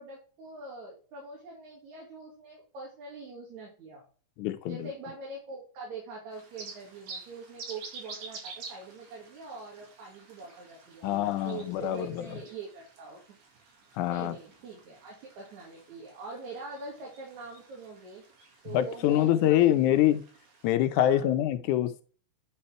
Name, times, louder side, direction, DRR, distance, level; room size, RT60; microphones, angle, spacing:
voice 1, 0.0-4.1 4.7-13.2 14.1-18.2 18.6-19.7 20.9-21.3, right 3 dB, 70° right, -3 dB, 3.3 m, -44 dB
voice 2, 4.4-4.9 11.0-12.4 14.0-14.4 18.7-20.2 20.6-22.0, left 12 dB, 85° left, 10 dB, 2.2 m, -25 dB
sound 1, 6.3-20.7, right 4 dB, 90° right, 3.5 m, -49 dB
9.5 x 4.3 x 3.3 m, 0.38 s
omnidirectional pair, 3.4 m